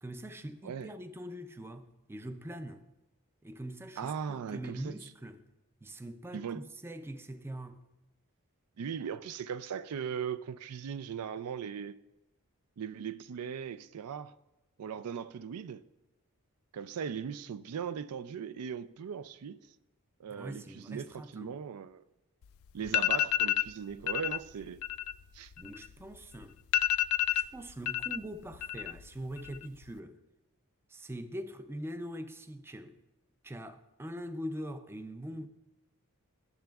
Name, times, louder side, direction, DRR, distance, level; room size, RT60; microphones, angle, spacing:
voice 1, 0.0-2.8 3.4-5.5 5.8-7.8 20.3-21.6 22.8-23.0 25.6-26.6 27.3-30.2 30.9-33.0 33.4-35.5, right 1 dB, 10° right, 0.4 m, -43 dB
voice 2, 4.0-4.9 6.3-6.7 8.8-12.0 12.8-14.3 14.8-15.8 16.7-19.6 20.2-22.0 22.7-24.8 25.3-25.5, right 7 dB, 85° right, 0.4 m, -39 dB
sound 1, 22.4-22.5 22.8-23.7 24.1-24.4 24.7-26.1 26.4-26.5 26.7-28.2 28.5-29.1 29.4-29.9, left 13 dB, 65° left, 0.3 m, -29 dB
18.0 x 6.8 x 2.4 m
head